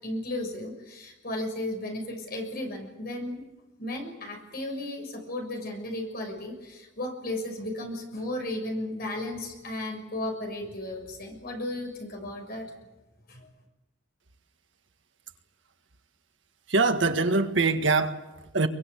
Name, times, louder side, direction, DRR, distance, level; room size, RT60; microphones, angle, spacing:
voice 1, 0.0-3.4 3.8-12.7 13.3-13.5, left 1 dB, 50° left, 2 dB, 6.6 m, -34 dB
voice 2, 16.7-18.7, right 3 dB, 70° right, 7 dB, 1.7 m, -24 dB
23.5 x 22.5 x 8.4 m, 1.1 s
head